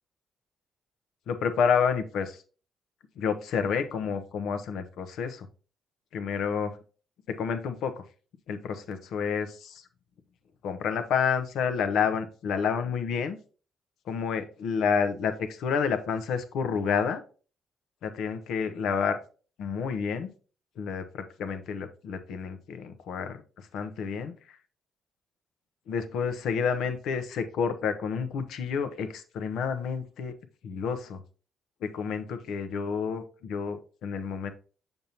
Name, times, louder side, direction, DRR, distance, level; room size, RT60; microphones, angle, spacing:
voice 1, 1.3-2.4 3.2-5.5 6.1-6.8 7.3-8.0 8.5-9.8 10.6-13.4 14.1-17.2 18.0-19.2 19.6-20.3 20.8-23.4 23.7-24.6 25.9-30.3 30.6-31.2 31.8-34.5, left 6 dB, 80° left, 9 dB, 0.8 m, -29 dB
6.8 x 5.3 x 2.9 m, 0.37 s
cardioid pair, 90°, 0 cm